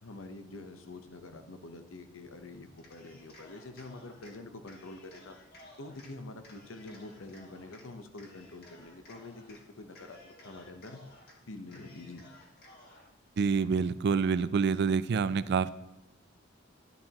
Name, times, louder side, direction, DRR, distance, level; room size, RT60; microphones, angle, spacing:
voice 1, 0.0-5.4 5.8-11.0 11.5-12.3, left 2 dB, 70° left, 8 dB, 0.9 m, -46 dB
Cheering, 2.7-4.3 4.7-6.1 6.4-7.8 8.2-9.6 9.9-11.3 11.7-13.1, left 2 dB, 50° left, 1.8 m, -56 dB
voice 2, 13.4-15.7, right 5 dB, 55° right, 15 dB, 0.4 m, -27 dB
10.5 x 10.0 x 2.9 m, 0.93 s
head